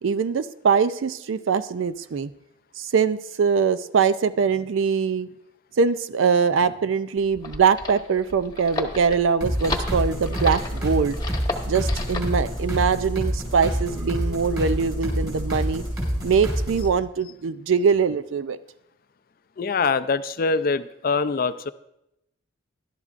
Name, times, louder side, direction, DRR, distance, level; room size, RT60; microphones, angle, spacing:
voice 1, 0.0-2.3 2.8-5.3 5.8-11.2 11.7-18.6, right 6 dB, 70° right, 13 dB, 0.4 m, -22 dB
sound 1, 7.2-12.3, left 2 dB, 20° left, 1.2 m, -32 dB
sound 2, 9.4-16.9, equal, 20° right, 5.5 m, -27 dB
voice 2, 19.6-21.7, left 4 dB, 45° left, 13 dB, 0.4 m, -24 dB
20.0 x 12.0 x 2.5 m, 0.85 s
head